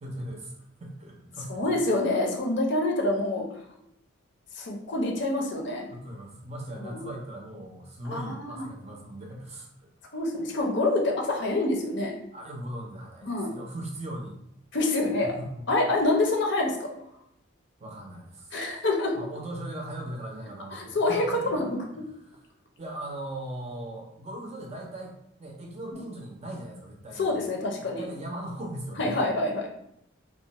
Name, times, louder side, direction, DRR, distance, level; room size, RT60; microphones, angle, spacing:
voice 1, 0.0-1.8 5.9-9.7 12.3-14.4 15.2-15.6 17.8-18.6 19.1-21.6 22.2-22.4 22.8-27.3 27.8-29.2, right 1 dB, 30° right, -1 dB, 0.5 m, -39 dB
voice 2, 1.5-3.5 4.5-5.9 6.8-7.1 8.1-8.7 10.1-12.1 13.2-13.5 14.7-15.3 15.7-16.9 18.5-19.2 20.7-21.8 27.2-28.0 29.0-29.7, left 2 dB, 55° left, 1 dB, 0.6 m, -26 dB
2.4 x 2.1 x 3.9 m, 0.77 s
head